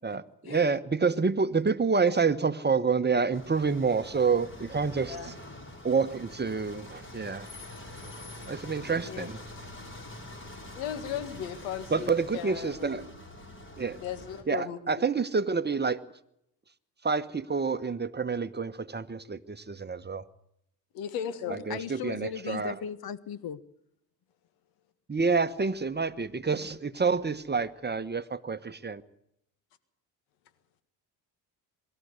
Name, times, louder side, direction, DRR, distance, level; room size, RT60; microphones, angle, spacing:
voice 1, 0.0-5.3 5.8-7.5 8.5-9.4 11.9-13.0 13.8-14.0 14.5-16.0 17.0-20.2 21.5-22.7 25.1-29.0, right 5 dB, 25° right, 12 dB, 1.1 m, -28 dB
sound 1, 3.3-14.4, left 1 dB, 25° left, 5.4 m, -45 dB
voice 2, 10.7-13.1 13.9-14.8 20.9-21.6, left 9 dB, 85° left, 12 dB, 1.9 m, -36 dB
voice 3, 21.7-23.6, left 8 dB, 55° left, 16 dB, 1.4 m, -37 dB
24.0 x 13.5 x 8.2 m, 0.78 s
hypercardioid pair, 60°, 44 cm